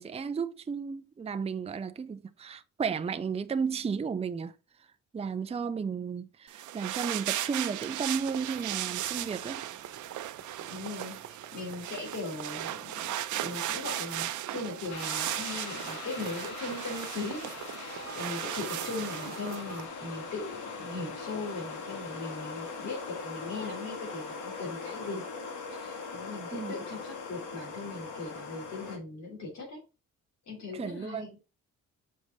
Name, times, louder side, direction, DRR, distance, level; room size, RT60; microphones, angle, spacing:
voice 1, 0.0-4.5 5.1-9.6 26.5-26.7 30.7-31.3, right 6 dB, 20° right, 0.5 m, -33 dB
sound 1, 6.5-19.6, right 13 dB, 75° right, 0.7 m, -37 dB
sound 2, 8.1-19.9, right 7 dB, 60° right, 1.1 m, -47 dB
voice 2, 10.7-25.2 25.7-29.8 30.5-31.3, left 3 dB, 60° left, 3.1 m, -39 dB
sound 3, 14.9-29.0, left 4 dB, 75° left, 1.9 m, -41 dB
6.7 x 5.0 x 4.1 m
cardioid pair, 90°, 30 cm